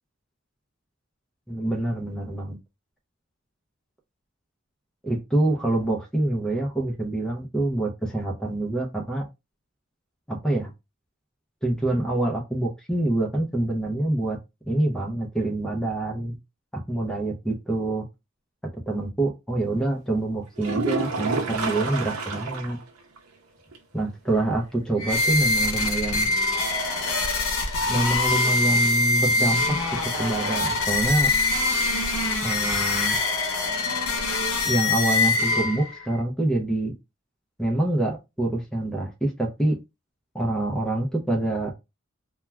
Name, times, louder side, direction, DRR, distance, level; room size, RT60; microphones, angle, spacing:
voice 1, 1.5-2.6 5.0-9.2 10.3-10.7 11.6-14.4 14.7-16.4 16.9-18.0 18.9-22.8 23.9-26.3 27.9-29.8 30.0-31.3 32.4-33.2 34.6-36.9 37.6-39.8 40.3-41.7, right 1 dB, 5° left, 0.5 m, -26 dB
sound 1, 20.6-22.8 23.2-23.3 23.7-23.8 27.6-27.7, right 4 dB, 90° right, 0.7 m, -28 dB
sound 2, 25.0-36.0, left 3 dB, 85° left, 0.7 m, -24 dB
2.3 x 2.2 x 3.0 m
head